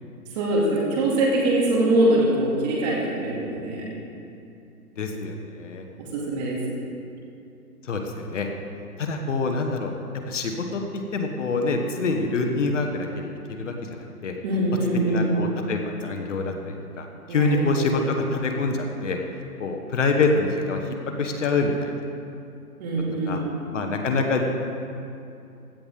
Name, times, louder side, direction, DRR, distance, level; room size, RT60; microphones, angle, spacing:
voice 1, 0.3-3.9 6.0-6.6 14.4-15.4 17.3-18.0 22.8-23.5, right 1 dB, 25° right, -3 dB, 2.5 m, -23 dB
voice 2, 5.0-5.8 7.9-8.5 9.0-9.9 10.3-10.8 11.1-13.3 13.6-14.3 15.1-19.2 19.6-20.8 21.2-21.9 23.3-23.4 23.7-24.4, left 3 dB, 50° left, 3 dB, 1.4 m, -26 dB
16.5 x 11.5 x 3.7 m, 2.6 s
hypercardioid pair, 155°, 46 cm